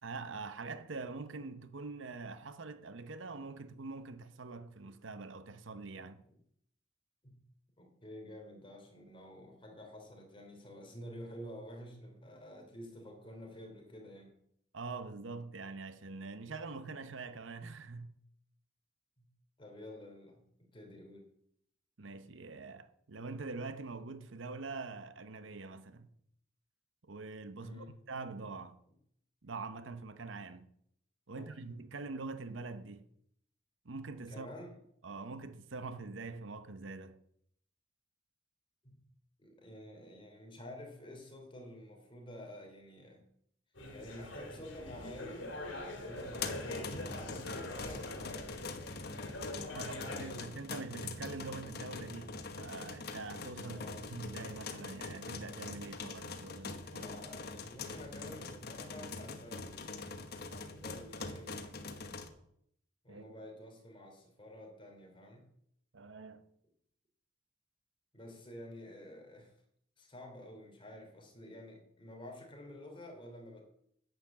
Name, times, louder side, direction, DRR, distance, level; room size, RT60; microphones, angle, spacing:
voice 1, 0.0-6.2 14.7-18.1 22.0-26.1 27.0-28.8 29.4-30.7 31.3-33.0 33.8-34.5 35.0-37.2 49.7-53.8 54.1-57.1 63.1-63.3 65.9-66.5, right 3 dB, 85° right, 0.9 m, -44 dB
voice 2, 7.8-14.4 19.2-19.3 19.6-21.3 27.6-27.9 31.3-31.5 34.3-34.8 38.8-39.0 39.4-43.2 43.9-48.6 49.5-50.7 53.7-54.2 56.9-61.8 63.0-65.4 68.1-69.5 70.0-73.6, left 1 dB, 25° left, 3.1 m, -50 dB
sound 1, 43.8-50.4, left 1 dB, 80° left, 2.3 m, -43 dB
sound 2, 46.1-62.3, left 4 dB, 55° left, 1.3 m, -43 dB
10.5 x 8.0 x 7.3 m
head